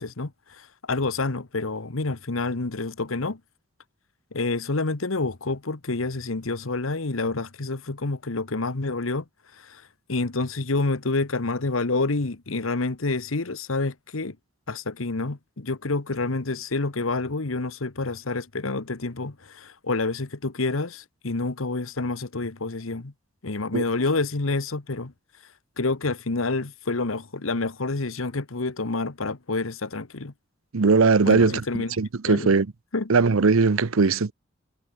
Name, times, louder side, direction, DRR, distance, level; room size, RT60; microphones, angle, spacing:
voice 1, 0.0-3.4 4.3-9.2 9.6-9.8 10.1-14.4 14.7-23.1 23.4-25.1 25.8-30.3 31.3-31.9 32.2-32.5 32.9-33.1, left 3 dB, 80° left, 1.3 m, -28 dB
voice 2, 30.7-31.6 32.0-32.7 33.1-34.3, right 4 dB, 90° right, 0.7 m, -19 dB
head